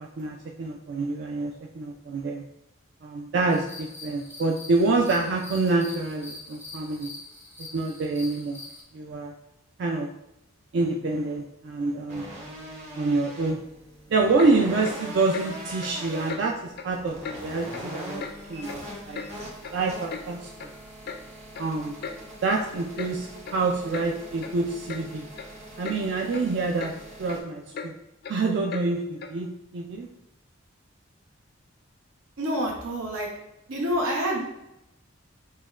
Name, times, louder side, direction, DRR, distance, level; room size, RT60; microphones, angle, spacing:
voice 1, 0.0-2.5 3.0-7.1 7.7-8.6 8.9-9.3 9.8-10.1 10.7-12.3 13.0-13.6 14.1-18.2 18.5-19.2 19.7-20.5 21.6-21.9 22.4-25.3 25.8-26.9 27.2-27.9 28.3-30.1, right 3 dB, 55° right, 1 dB, 0.3 m, -27 dB
sound 1, 3.5-8.8, left 3 dB, 10° right, 0.7 m, -44 dB
sound 2, 12.1-27.4, equal, 35° right, 1.1 m, -41 dB
Clock, 14.4-14.5 14.8-15.0 15.3-15.5 15.8-15.9 16.3-16.4 16.8-16.9 17.2-17.4 17.7-17.9 18.2-18.3 18.7-19.3 19.6-19.7 20.1-20.2 20.6-20.7 21.1-21.2 21.5-21.7 22.0-22.2 22.5-22.7 23.0-23.1 23.4-23.6 23.9-24.1 24.4-24.5 24.9-25.0 25.4-25.5 25.8-26.0 26.3-26.5 26.8-27.0 27.2-27.4 27.7-27.9 28.2-28.4 28.7-28.9 29.2-29.3, left 5 dB, 50° left, 0.3 m, -37 dB
voice 2, 32.4-33.3 33.7-34.4, equal, 80° right, 0 dB, 0.7 m, -27 dB
6.2 x 2.2 x 2.3 m, 0.86 s
head